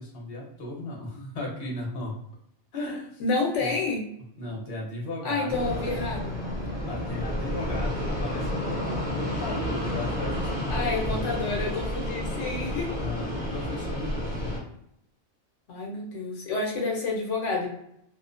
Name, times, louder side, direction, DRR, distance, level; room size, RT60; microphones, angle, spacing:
voice 1, 0.0-2.2 2.7-3.2 3.6-3.7 4.4-5.6 6.9-11.3 12.9-14.5, left 2 dB, 60° left, -3 dB, 1.0 m, -36 dB
voice 2, 3.2-4.0 5.2-6.4 10.7-13.0 15.7-17.7, left 3 dB, 85° left, -1 dB, 1.0 m, -29 dB
Fixed-wing aircraft airplane, 5.5-14.6, left 1 dB, 20° left, 1.0 m, -30 dB
2.5 x 2.1 x 2.4 m, 0.74 s
omnidirectional pair, 1.2 m